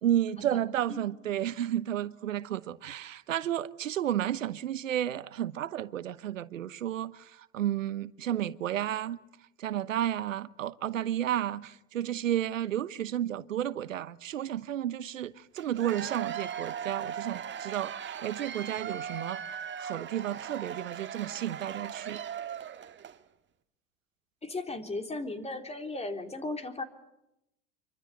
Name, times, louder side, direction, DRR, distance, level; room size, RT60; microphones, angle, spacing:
voice 1, 0.0-9.2 9.6-19.4 19.8-22.2, right 11 dB, 90° right, 1.0 m, -32 dB
Cheering / Applause / Crowd, 15.6-23.2, right 8 dB, 30° right, 1.7 m, -39 dB
voice 2, 24.4-26.8, left 2 dB, 15° left, 3.7 m, -36 dB
26.0 x 24.0 x 8.7 m
hypercardioid pair, 85°, 38 cm